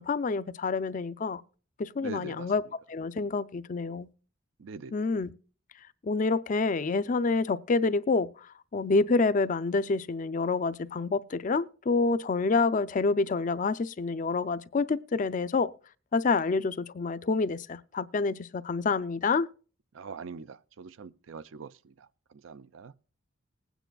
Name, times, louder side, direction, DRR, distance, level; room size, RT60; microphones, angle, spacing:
voice 1, 0.0-1.4 1.8-2.6 2.9-4.1 4.9-5.3 6.0-15.7 16.1-19.5, left 4 dB, 40° left, 0.4 m, -28 dB
voice 2, 2.0-2.5 4.6-4.9 19.9-22.9, right 5 dB, 85° right, 0.5 m, -43 dB
20.0 x 9.1 x 2.3 m
head